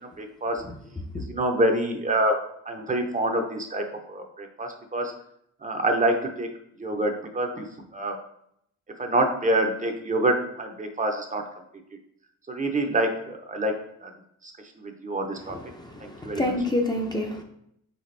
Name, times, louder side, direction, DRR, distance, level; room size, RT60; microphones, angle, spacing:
voice 1, 0.2-0.6 1.2-2.4 2.7-5.1 5.6-6.5 6.8-7.7 7.9-8.2 9.0-11.4 12.5-13.7 14.0-14.1 14.4-14.5 14.8-15.6 16.0-16.5, right 1 dB, 25° right, 4 dB, 0.6 m, -26 dB
voice 2, 15.5-17.4, left 1 dB, 15° left, 2 dB, 0.5 m, -28 dB
4.2 x 3.5 x 3.2 m, 0.72 s
cardioid pair, 90°, 30 cm